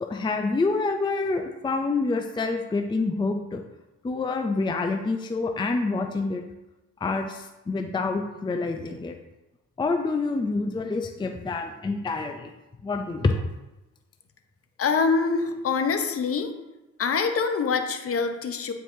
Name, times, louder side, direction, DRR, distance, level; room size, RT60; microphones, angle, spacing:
voice 1, 0.0-3.6 4.0-6.4 7.0-9.2 9.8-12.5 12.8-13.3, left 3 dB, 15° left, 5 dB, 0.5 m, -27 dB
voice 2, 14.8-16.5 17.0-18.7, left 5 dB, 50° left, 6 dB, 0.8 m, -25 dB
8.8 x 4.6 x 2.7 m, 1.0 s
cardioid pair, 90°, 30 cm